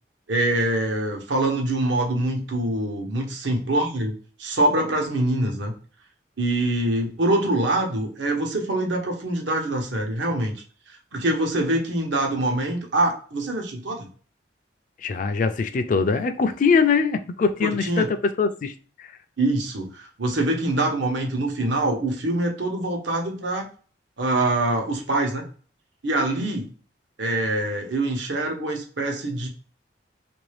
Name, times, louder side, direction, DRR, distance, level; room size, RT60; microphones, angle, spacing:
voice 1, 0.3-4.1 4.4-5.7 6.4-10.6 11.1-14.1 17.6-18.1 19.4-23.7 24.2-25.5 26.0-26.7 27.2-29.5, right 1 dB, 85° right, 2 dB, 0.9 m, -24 dB
voice 2, 15.0-18.7 19.0-19.1, left 5 dB, 45° left, 8 dB, 0.3 m, -22 dB
3.1 x 2.6 x 3.2 m, 0.39 s
head